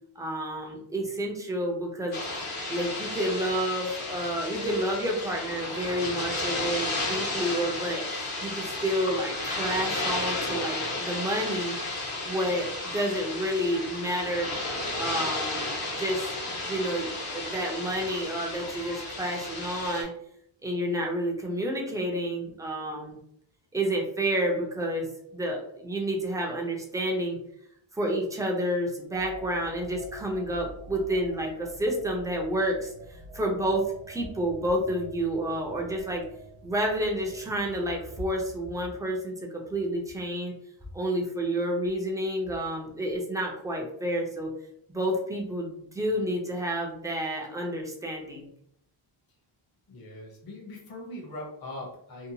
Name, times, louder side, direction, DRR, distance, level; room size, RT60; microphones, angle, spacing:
voice 1, 0.2-2.2 2.7-11.8 12.3-12.7 12.9-14.5 15.0-20.1 20.6-23.2 23.7-27.4 27.9-36.2 36.6-40.5 40.9-44.5 44.9-48.5, right 1 dB, 10° right, 0 dB, 0.4 m, -30 dB
sound 1, 2.1-20.0, left 2 dB, 80° left, 1.1 m, -33 dB
sound 2, 29.1-39.0, right 1 dB, 75° right, 0.9 m, -47 dB
voice 2, 49.9-52.3, left 1 dB, 45° left, -2 dB, 0.8 m, -41 dB
2.8 x 2.2 x 2.7 m, 0.71 s
wide cardioid pair, 150°, 49 cm